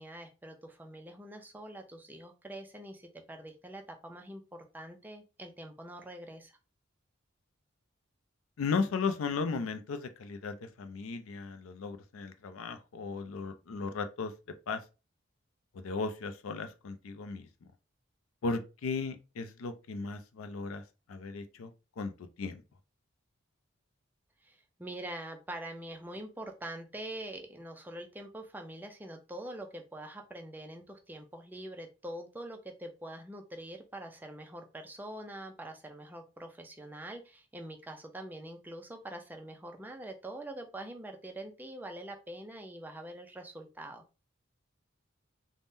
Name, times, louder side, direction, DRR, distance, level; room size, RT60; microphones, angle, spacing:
voice 1, 0.0-6.6 24.4-44.0, right 1 dB, 10° right, 0.3 m, -44 dB
voice 2, 8.6-14.3 14.7-14.8 15.7-17.5 18.4-20.8 21.1-21.7 22.0-22.1 22.4-22.6, left 4 dB, 80° left, 0.4 m, -36 dB
3.5 x 2.1 x 2.5 m
head